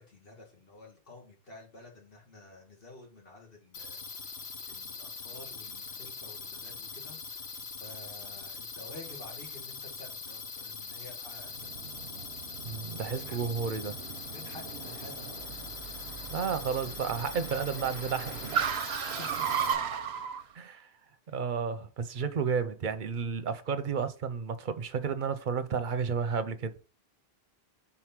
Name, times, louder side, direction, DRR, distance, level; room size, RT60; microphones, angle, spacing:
voice 1, 0.0-4.3 4.7-11.8 12.7-13.4 14.3-15.5 15.8-16.0, left 2 dB, 60° left, 2.2 m, -51 dB
sound 1, 3.7-19.7, left 5 dB, 85° left, 1.4 m, -42 dB
Car, 11.5-20.4, right 7 dB, 90° right, 0.9 m, -36 dB
voice 2, 12.6-14.0 16.3-18.6 20.5-20.9 21.3-26.7, right 6 dB, 55° right, 0.8 m, -32 dB
4.8 x 4.2 x 5.8 m
omnidirectional pair, 1.1 m